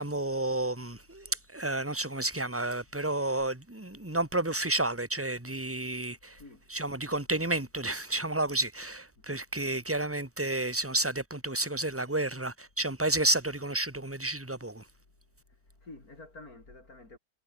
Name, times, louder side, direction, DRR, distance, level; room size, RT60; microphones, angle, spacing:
voice 1, 0.0-6.4 6.7-14.8, right 2 dB, 10° right, 2.6 m, -31 dB
voice 2, 6.4-6.7 9.2-9.3 15.5-17.2, left 2 dB, 60° left, 5.5 m, -50 dB
omnidirectional pair, 1.7 m